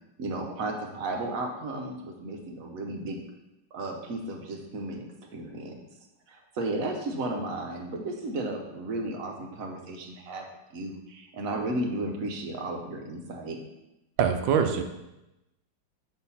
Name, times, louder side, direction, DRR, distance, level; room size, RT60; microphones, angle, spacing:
voice 1, 0.2-3.2 3.7-5.7 6.3-13.6, right 2 dB, 55° right, 3 dB, 1.1 m, -34 dB
voice 2, 14.2-14.8, right 7 dB, 80° right, 7 dB, 1.3 m, -23 dB
6.0 x 4.4 x 5.5 m, 0.93 s
omnidirectional pair, 2.1 m